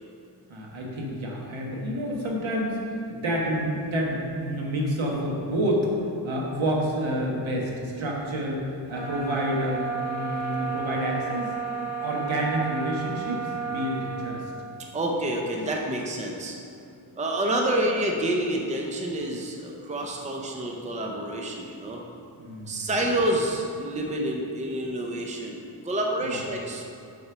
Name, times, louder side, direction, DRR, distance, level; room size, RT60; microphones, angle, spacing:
voice 1, 0.5-5.9 6.2-8.6 8.9-9.8 10.1-11.5 12.0-14.5 22.4-22.9 26.2-26.4, equal, 75° right, -2 dB, 1.4 m, -29 dB
sound 1, 8.9-14.5, right 5 dB, 35° right, 1.0 m, -32 dB
voice 2, 14.9-16.5 17.2-22.0 22.7-26.9, right 1 dB, 15° right, 0 dB, 0.6 m, -28 dB
6.4 x 4.3 x 6.1 m, 2.6 s
wide cardioid pair, 135°, 48 cm